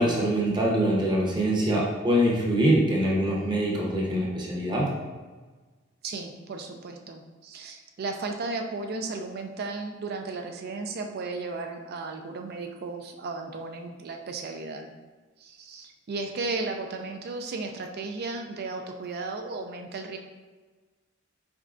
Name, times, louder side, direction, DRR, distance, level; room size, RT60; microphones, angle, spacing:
voice 1, 0.0-5.0, right 1 dB, 25° right, -4 dB, 0.8 m, -24 dB
voice 2, 6.0-14.9 15.4-20.2, right 3 dB, 50° right, 4 dB, 0.4 m, -35 dB
4.2 x 3.6 x 2.4 m, 1.3 s
head